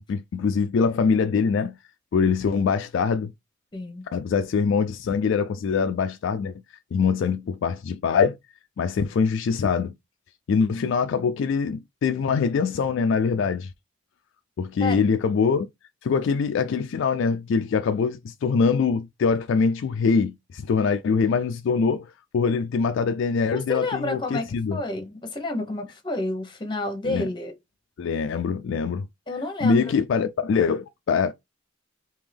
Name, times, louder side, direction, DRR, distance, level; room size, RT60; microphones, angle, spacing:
voice 1, 0.1-1.8 2.1-3.3 4.1-6.6 6.9-8.4 8.8-9.9 10.5-13.7 14.6-15.7 16.0-22.1 22.3-24.8 27.0-27.3 28.0-29.1 29.6-31.3, left 5 dB, 60° left, 0.3 m, -23 dB
voice 2, 3.7-4.1 14.8-15.0 23.5-27.5 29.3-29.9, left 2 dB, 25° left, 1.0 m, -30 dB
3.5 x 2.9 x 3.4 m
head